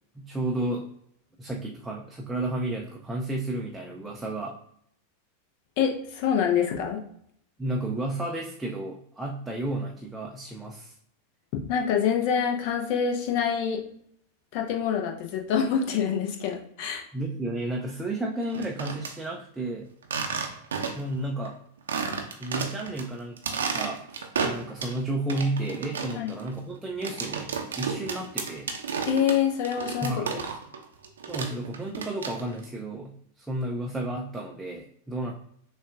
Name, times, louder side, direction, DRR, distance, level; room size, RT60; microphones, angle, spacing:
voice 1, 0.2-0.9 1.4-4.6 7.6-10.9 17.1-19.9 21.0-21.6 22.4-23.4 23.7-28.7 30.0-30.4 31.3-35.3, right 1 dB, 5° right, -1 dB, 0.5 m, -32 dB
voice 2, 5.8-7.0 11.5-13.8 14.5-17.0 26.1-26.3 29.0-30.4, left 8 dB, 45° left, 2 dB, 0.8 m, -26 dB
sound 1, 18.4-19.1 20.0-21.1 21.4-21.5 21.9-23.0 23.4-25.0 25.3-30.8 31.0-32.6, right 5 dB, 65° right, 0.6 m, -32 dB
6.3 x 2.4 x 2.4 m, 0.68 s
figure-of-eight pair, 90°, 0 cm